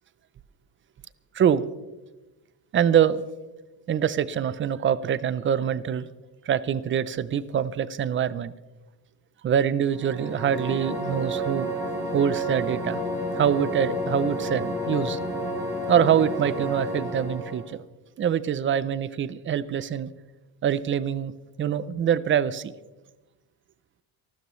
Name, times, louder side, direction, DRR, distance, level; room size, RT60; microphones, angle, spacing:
voice 1, 2.7-3.2 3.9-6.1 6.5-8.5 9.4-11.7 12.1-13.0 13.4-15.2 15.9-17.8 18.2-20.1 20.6-21.3 21.6-22.7, right 8 dB, 30° right, 16 dB, 0.4 m, -24 dB
sound 1, 9.9-17.7, right 1 dB, 5° right, 3.7 m, -30 dB
28.5 x 12.5 x 3.1 m, 1.1 s
cardioid pair, 165°, 46 cm